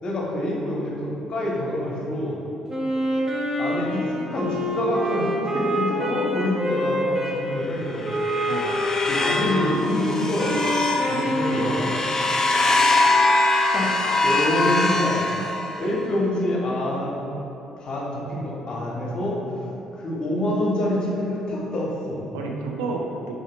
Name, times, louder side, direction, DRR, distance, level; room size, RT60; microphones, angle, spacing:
voice 1, 0.0-2.4 3.6-8.2 9.1-10.7 11.4-11.9 13.7-13.9 14.2-15.3 15.8-17.2 17.8-19.4 20.0-22.2, left 1 dB, 45° left, -4 dB, 0.8 m, -26 dB
Wind instrument woodwind instrument, 2.7-7.4 8.0-12.0, equal, 20° right, 0.7 m, -26 dB
sound 1, 7.7-16.0, left 2 dB, 25° left, 0.3 m, -23 dB
voice 2, 11.1-11.8 22.3-23.3, right 3 dB, 75° right, 0 dB, 0.3 m, -31 dB
3.8 x 2.9 x 2.9 m, 3.0 s
hypercardioid pair, 50°, 2 cm